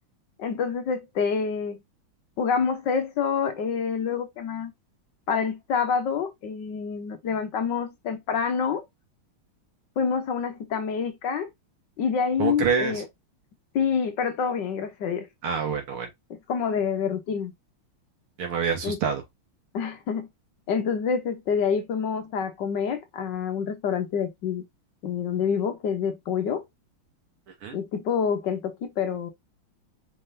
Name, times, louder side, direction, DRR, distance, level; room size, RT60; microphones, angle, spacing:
voice 1, 0.4-1.8 2.4-4.7 5.3-8.8 10.0-11.5 12.0-13.0 13.7-15.3 16.5-17.5 18.8-19.0 19.7-20.3 20.7-24.6 25.0-26.6 27.7-29.3, left 6 dB, 65° left, 1.4 m, -27 dB
voice 2, 12.4-13.0 15.4-16.1 18.4-19.2 27.6-27.8, right 6 dB, 85° right, 2.3 m, -26 dB
5.5 x 3.5 x 2.6 m
omnidirectional pair, 2.3 m